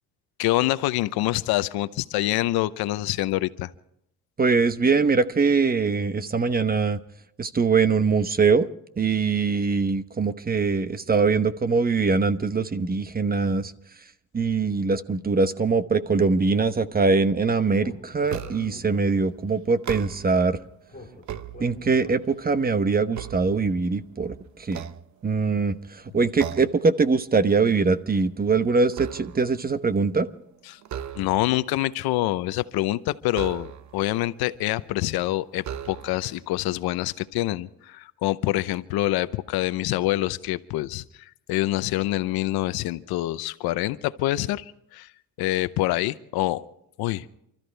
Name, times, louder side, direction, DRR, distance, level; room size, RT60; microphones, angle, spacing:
voice 1, 0.4-3.7 30.7-30.8 31.1-45.1 45.4-46.6 47.0-47.3, left 16 dB, 85° left, 15 dB, 0.8 m, -26 dB
voice 2, 4.4-7.0 7.4-8.7 9.0-13.7 14.3-20.6 21.6-24.9 25.2-30.3, right 4 dB, 25° right, 12 dB, 1.0 m, -22 dB
Speech, 17.8-19.6 20.9-22.6, left 1 dB, 25° left, 3.7 m, -45 dB
sound 1, 18.3-18.9 19.7-20.5 21.0-22.1 22.6-24.1 24.6-25.6 26.4-26.9 27.3-27.5 27.9-29.6 30.8-31.6 33.3-34.1 34.9-35.0 35.6-36.4, right 9 dB, 50° right, 0.9 m, -37 dB
29.0 x 13.5 x 3.4 m, 0.77 s
cardioid pair, 95°, 36 cm